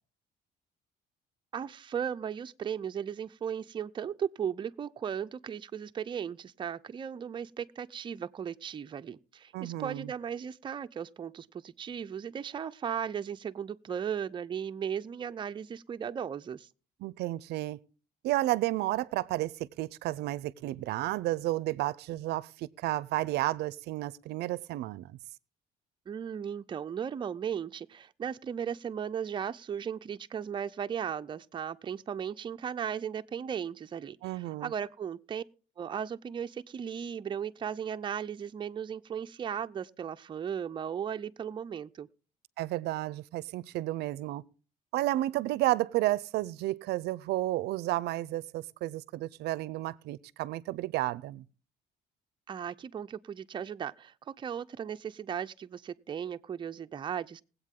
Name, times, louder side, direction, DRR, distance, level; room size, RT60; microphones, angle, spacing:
voice 1, 1.5-16.7 26.1-35.4 35.8-42.1 52.5-57.4, right 8 dB, 30° right, 0.5 m, -36 dB
voice 2, 9.5-10.1 17.0-17.8 18.2-25.2 34.2-34.7 42.6-44.4 44.9-51.4, right 16 dB, 75° right, 0.5 m, -32 dB
20.0 x 8.2 x 3.7 m
cardioid pair, 110°, 17 cm